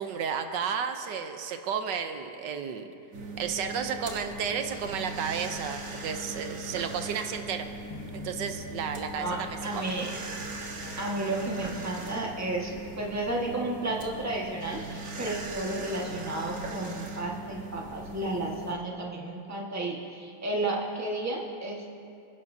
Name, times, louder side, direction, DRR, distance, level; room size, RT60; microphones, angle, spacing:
voice 1, 0.0-2.9 3.4-7.7 8.1-9.9, right 7 dB, 85° right, 6 dB, 1.4 m, -32 dB
sound 1, 3.1-18.7, right 2 dB, 50° right, 1.6 m, -40 dB
sound 2, 7.9-11.1, left 5 dB, 65° left, 1.4 m, -46 dB
voice 2, 9.6-10.1 11.0-21.9, right 2 dB, 10° right, -2 dB, 1.4 m, -32 dB
26.5 x 11.0 x 2.7 m, 2.5 s
omnidirectional pair, 1.9 m